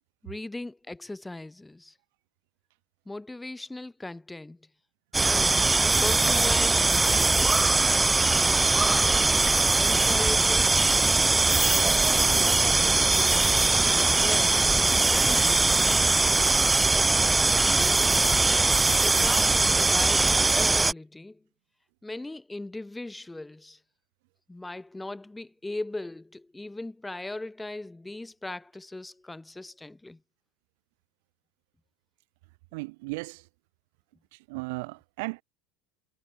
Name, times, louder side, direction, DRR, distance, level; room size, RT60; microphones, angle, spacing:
voice 1, 0.2-1.9 3.1-4.6 5.2-5.7 6.0-7.7 8.7-9.2 9.7-10.8 12.1-14.6 15.1-16.0 17.6-18.6 19.0-21.4 22.0-23.8 24.5-30.2, left 2 dB, 10° left, 2.8 m, -39 dB
sound 1, 5.1-20.9, right 3 dB, 15° right, 0.9 m, -21 dB
voice 2, 32.7-33.4 34.5-35.4, right 26 dB, 75° right, 3.3 m, -35 dB
supercardioid pair, 95°, 0 cm